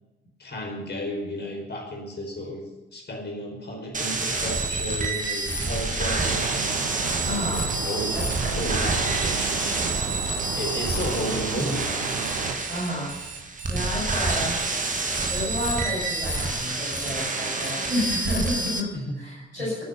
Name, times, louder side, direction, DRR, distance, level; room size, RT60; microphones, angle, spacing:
voice 1, 0.4-2.6 2.9-6.6 7.3-8.2 8.5-9.9 10.5-12.1 18.9-19.2 19.6-19.7, equal, 35° left, 1 dB, 4.8 m, -33 dB
sound 1, 3.9-18.8, right 2 dB, 25° right, 2.4 m, -28 dB
sound 2, 6.2-12.6, right 7 dB, 65° right, 1.6 m, -33 dB
voice 2, 7.2-7.6 8.1-8.6 12.7-13.2 13.7-14.6 15.3-18.9 19.2-19.8, left 1 dB, 90° left, -7 dB, 5.7 m, -31 dB
Alarm, 8.0-16.4, right 7 dB, 85° right, 1.2 m, -41 dB
21.0 x 9.4 x 6.9 m, 1.1 s
figure-of-eight pair, 40°, 31 cm